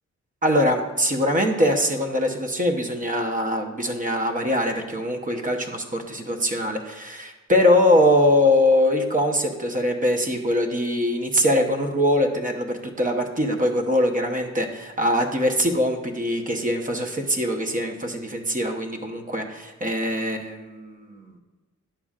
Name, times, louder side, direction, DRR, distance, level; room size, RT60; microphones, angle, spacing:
voice 1, 0.4-21.3, left 1 dB, 25° right, 3 dB, 0.9 m, -22 dB
10.0 x 6.8 x 2.4 m, 1.3 s
cardioid pair, 100°, 30 cm